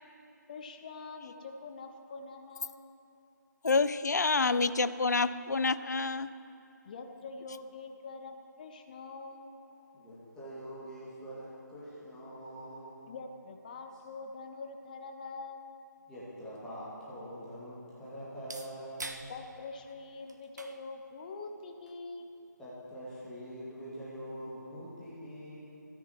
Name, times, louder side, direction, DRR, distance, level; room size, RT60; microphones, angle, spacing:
voice 1, 0.5-2.8 6.8-9.5 13.1-15.8 19.3-22.3, left 3 dB, 25° left, 5 dB, 0.8 m, -44 dB
voice 2, 3.6-6.3, left 4 dB, 60° left, 14 dB, 0.5 m, -28 dB
voice 3, 9.9-13.0 16.1-19.3 22.6-25.6, equal, 5° left, -10 dB, 2.4 m, -44 dB
sound 1, 16.0-24.0, right 3 dB, 60° right, 1.0 m, -51 dB
27.0 x 10.5 x 3.1 m, 2.8 s
figure-of-eight pair, 150°, 10 cm